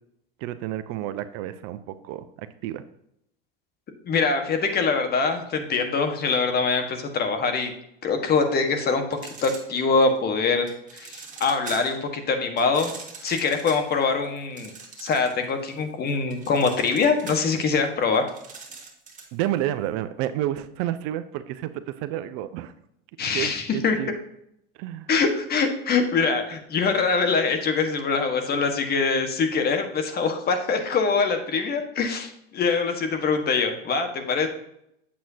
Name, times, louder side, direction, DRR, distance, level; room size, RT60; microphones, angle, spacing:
voice 1, 0.4-2.3 2.6-2.8 19.3-22.7 23.3-24.2 24.8-25.1, right 13 dB, 50° right, 12 dB, 0.6 m, -30 dB
voice 2, 4.0-7.7 8.0-10.7 10.9-12.9 13.2-14.7 15.0-18.2 23.2-24.0 25.1-34.5, left 4 dB, 35° left, 6 dB, 1.5 m, -24 dB
sound 1, 9.1-10.2 10.7-12.0 12.6-15.5 15.8-19.4, right 4 dB, 25° right, 2.0 m, -42 dB
8.6 x 7.4 x 2.8 m, 0.75 s
hypercardioid pair, 95°, 29 cm